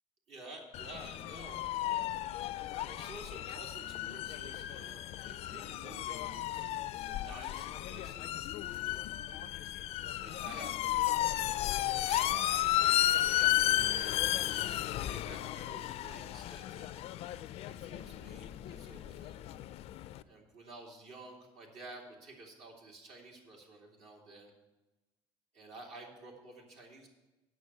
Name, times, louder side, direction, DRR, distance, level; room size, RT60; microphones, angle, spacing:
voice 1, 0.3-2.1 2.8-9.1 10.1-10.9 12.0-14.6 15.0-16.9 17.7-19.4 20.3-24.5 25.5-27.1, right 2 dB, 65° right, -1 dB, 2.7 m, -51 dB
sound 1, 0.7-20.2, left 14 dB, 60° left, 0.4 m, -34 dB
8.7 x 6.2 x 8.1 m, 1.1 s
supercardioid pair, 95°, 12 cm